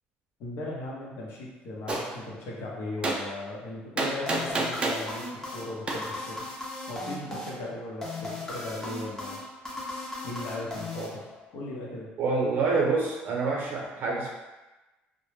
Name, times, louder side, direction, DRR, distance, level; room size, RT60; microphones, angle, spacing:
voice 1, 0.4-5.3 5.5-6.4 6.9-9.4 10.2-11.2 11.5-12.1, left 2 dB, 70° left, -4 dB, 0.7 m, -37 dB
Gunshot gunfire, 1.9-2.1 3.0-3.2 4.0-5.1 5.9-6.0, right 2 dB, 25° right, 0.4 m, -27 dB
sound 1, 4.3-11.6, left 2 dB, 10° left, 0.7 m, -38 dB
voice 2, 12.2-14.3, right 4 dB, 55° right, -2 dB, 0.7 m, -27 dB
2.1 x 2.0 x 3.1 m, 1.1 s
cardioid pair, 95°, 4 cm